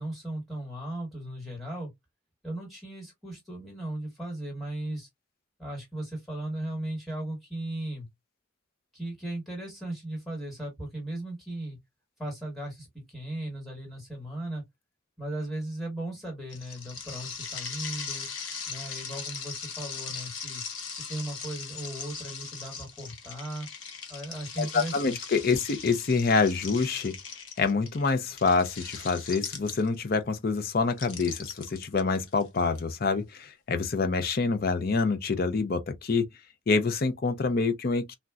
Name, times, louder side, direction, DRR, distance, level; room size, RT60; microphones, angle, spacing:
voice 1, 0.0-1.9 2.4-5.1 5.6-8.1 8.9-11.8 12.2-14.6 15.2-18.3 18.7-20.6 20.9-23.7 24.1-25.2, right 1 dB, ahead, 1.3 m, -37 dB
sound 1, 16.5-30.1 30.9-32.8, left 5 dB, 70° left, 0.9 m, -39 dB
voice 2, 24.6-27.2 27.6-36.2 36.7-38.2, left 4 dB, 45° left, 0.5 m, -26 dB
3.8 x 2.2 x 2.3 m
head